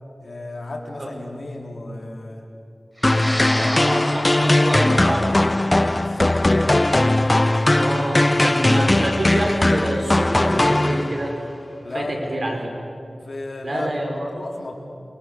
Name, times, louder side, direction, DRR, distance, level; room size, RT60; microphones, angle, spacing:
voice 1, 0.2-2.5 3.3-4.1 6.0-6.7 11.8-12.2 13.2-14.7, left 2 dB, 70° left, 1 dB, 3.9 m, -34 dB
sound 1, 3.0-11.4, left 1 dB, 30° left, 0.6 m, -19 dB
sound 2, 3.0-11.5, equal, 5° right, 6.4 m, -33 dB
voice 2, 3.7-5.4 7.8-11.4 11.9-12.7 13.6-14.3, right 1 dB, 55° right, 1 dB, 5.4 m, -27 dB
28.5 x 23.0 x 6.9 m, 2.5 s
wide cardioid pair, 60°, 0 cm